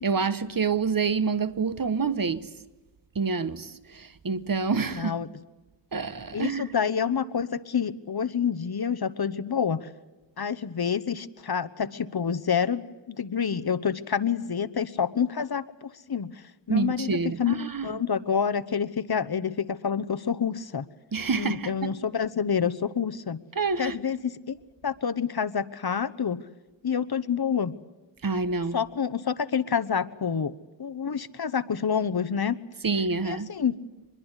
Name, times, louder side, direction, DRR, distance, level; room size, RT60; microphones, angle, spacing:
voice 1, 0.0-2.5 3.1-5.1 5.9-6.6 16.7-18.0 21.1-21.9 23.6-24.0 28.2-28.8 32.8-33.5, right 5 dB, 45° right, 1.2 m, -27 dB
voice 2, 4.9-5.3 6.3-9.9 10.4-16.4 16.7-17.6 17.8-20.9 21.3-23.4 23.8-24.6 24.8-26.4 26.8-27.7 28.7-30.5 30.8-32.6 33.2-33.8, left 7 dB, 55° left, 1.1 m, -28 dB
25.5 x 22.0 x 8.1 m
wide cardioid pair, 85°, 46 cm